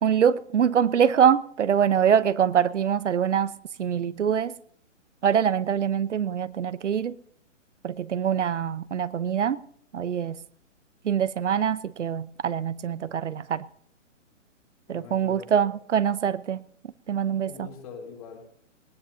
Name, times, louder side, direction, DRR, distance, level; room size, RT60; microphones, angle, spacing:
voice 1, 0.0-3.5 3.8-4.5 5.2-7.2 7.8-9.6 9.9-10.4 11.0-13.6 14.9-16.6 17.1-17.7, right 8 dB, 70° right, 0.9 m, -24 dB
voice 2, 14.9-15.7 17.4-18.4, left 5 dB, 30° left, 3.8 m, -43 dB
21.0 x 19.0 x 2.8 m
hypercardioid pair, 175°, 38 cm